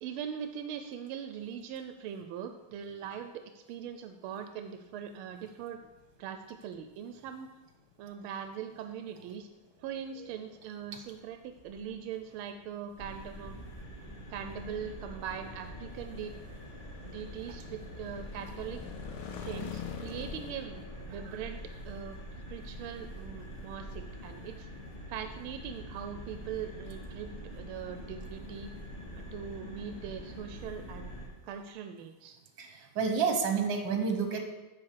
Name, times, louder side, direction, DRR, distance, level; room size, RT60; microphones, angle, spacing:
voice 1, 0.0-5.9 6.2-7.5 8.0-9.5 9.8-13.6 14.0-16.4 17.0-18.8 19.3-22.2 22.5-24.7 25.1-28.7 29.1-31.2 31.4-32.4, right 8 dB, 90° right, 7 dB, 1.5 m, -41 dB
sound 1, 4.5-20.5, left 9 dB, 90° left, 1.6 m, -49 dB
sound 2, 13.0-31.3, equal, 25° left, 1.8 m, -45 dB
voice 2, 32.6-34.4, right 5 dB, 65° right, 5 dB, 1.8 m, -29 dB
9.8 x 4.4 x 6.6 m, 1.1 s
omnidirectional pair, 2.3 m